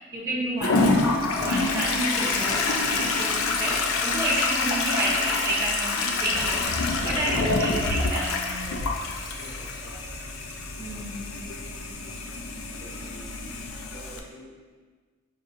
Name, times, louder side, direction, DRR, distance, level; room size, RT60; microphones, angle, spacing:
voice 1, 0.0-9.0 10.8-11.2, right 1 dB, 15° right, -11 dB, 0.5 m, -30 dB
Toilet flush, 0.6-14.2, left 3 dB, 80° left, 0.4 m, -27 dB
voice 2, 9.3-11.7 12.7-14.5, right 1 dB, 65° right, -5 dB, 1.1 m, -49 dB
5.0 x 2.6 x 2.5 m, 1.4 s
head